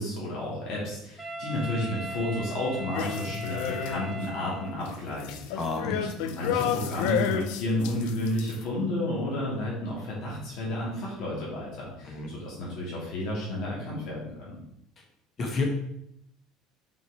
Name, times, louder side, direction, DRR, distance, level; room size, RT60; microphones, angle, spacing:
voice 1, 0.0-5.9 6.2-14.6, left 1 dB, 60° left, -6 dB, 2.9 m, -32 dB
Wind instrument woodwind instrument, 1.2-5.0, right 2 dB, 10° right, 1.4 m, -39 dB
sound 1, 2.9-4.3 4.6-8.6, left 9 dB, 80° left, 0.7 m, -31 dB
voice 2, 5.5-6.0 12.1-12.3 15.4-15.6, left 3 dB, 30° left, 2 dB, 1.6 m, -30 dB
6.3 x 5.4 x 4.9 m, 0.78 s
cardioid pair, 145°, 0 cm